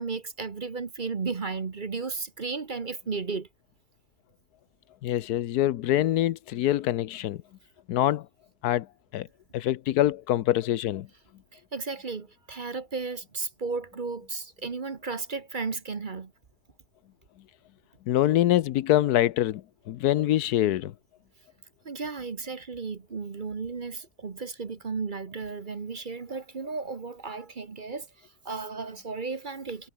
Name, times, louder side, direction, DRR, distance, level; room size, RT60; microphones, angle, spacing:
voice 1, 0.0-3.5 11.5-16.3 21.8-28.1 28.4-29.9, right 4 dB, 35° right, 1.1 m, -34 dB
voice 2, 5.0-7.4 7.9-8.3 8.6-8.9 9.1-9.3 9.5-11.1 18.1-20.9, left 13 dB, 80° left, 1.2 m, -24 dB
omnidirectional pair, 1.7 m